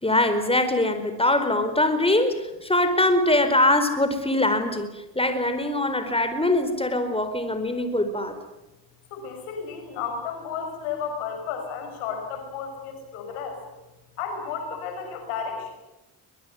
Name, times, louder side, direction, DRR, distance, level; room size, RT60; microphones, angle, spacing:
voice 1, 0.0-8.3, left 1 dB, 10° left, 9 dB, 4.6 m, -23 dB
voice 2, 9.1-13.6 14.2-15.7, left 6 dB, 85° left, 4 dB, 5.9 m, -33 dB
22.0 x 22.0 x 9.6 m, 1.0 s
hypercardioid pair, 55°, 49 cm